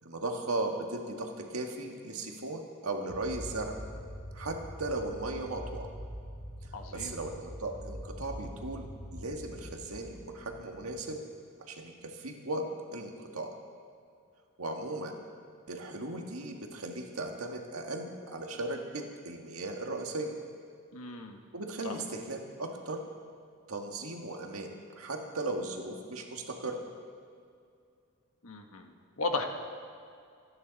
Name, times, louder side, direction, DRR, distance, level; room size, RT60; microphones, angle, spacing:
voice 1, 0.0-3.8 4.3-5.9 6.9-11.2 11.7-12.6 12.9-13.5 14.6-15.1 15.7-20.4 21.5-23.0 23.7-24.7 25.0-26.8, right 2 dB, 80° right, 2 dB, 1.8 m, -37 dB
sound 1, 3.1-11.0, equal, 10° right, 1.6 m, -44 dB
voice 2, 6.7-7.1 20.9-21.4 21.8-21.9 28.4-28.9 29.2-29.5, left 3 dB, 80° left, 4 dB, 1.4 m, -35 dB
27.5 x 9.8 x 4.1 m, 2.4 s
head